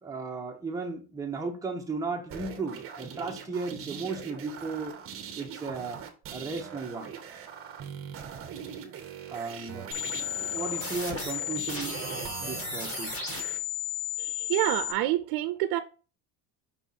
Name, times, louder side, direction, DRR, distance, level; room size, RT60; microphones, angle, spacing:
voice 1, 0.0-4.9 5.4-6.0 6.3-7.1 9.3-9.9 10.4-13.2, right 4 dB, 10° right, 0.9 m, -35 dB
sound 1, 2.3-13.6, right 8 dB, 30° right, 0.9 m, -41 dB
sound 2, 9.9-14.9, left 8 dB, 30° left, 2.2 m, -34 dB
voice 2, 14.2-15.8, right 14 dB, 65° right, 0.6 m, -27 dB
5.6 x 4.5 x 4.1 m
cardioid pair, 170°, 42 cm